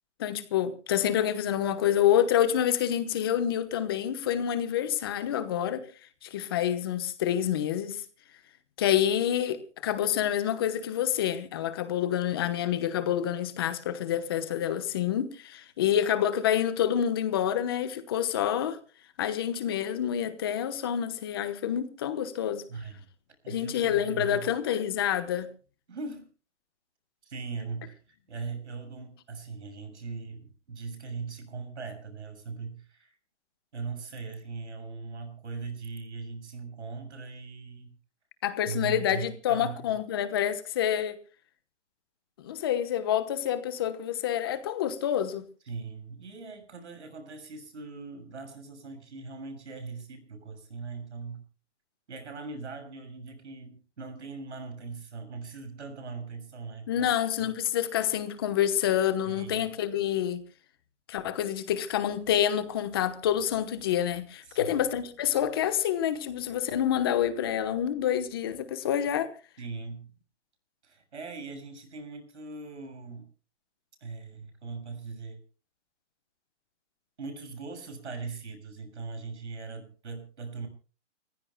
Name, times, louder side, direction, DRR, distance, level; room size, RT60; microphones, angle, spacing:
voice 1, 0.2-5.8 6.2-8.0 8.8-18.8 19.2-22.6 23.5-25.5 38.4-41.2 42.4-45.4 56.9-60.4 61.1-69.3, left 10 dB, 20° left, 1.0 m, -27 dB
voice 2, 22.7-23.1 23.4-24.5 25.9-26.3 27.2-33.1 33.7-37.9 38.6-40.0 45.6-51.4 52.1-57.1 57.4-57.5 59.2-59.7 64.5-64.8 69.6-70.1 70.8-73.3 74.0-75.4 77.2-80.7, right 4 dB, 65° right, 6.7 m, -40 dB
29.5 x 15.5 x 2.2 m
hypercardioid pair, 170°, 36 cm